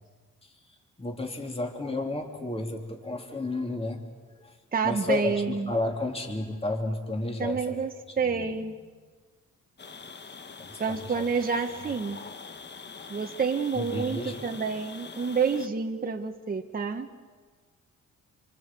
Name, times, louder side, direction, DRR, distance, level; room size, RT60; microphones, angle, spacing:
voice 1, 0.4-4.0 4.4-4.6 4.8-7.8 8.1-8.6 10.6-11.3 13.7-14.6, left 2 dB, 20° left, 1 dB, 3.2 m, -33 dB
voice 2, 4.7-5.7 7.4-8.7 10.8-12.2 13.1-17.1, right 5 dB, 30° right, 4 dB, 1.3 m, -28 dB
sound 1, 9.8-15.7, left 5 dB, 35° left, 1.3 m, -44 dB
27.0 x 25.0 x 7.6 m, 1.5 s
cardioid pair, 100°, 30 cm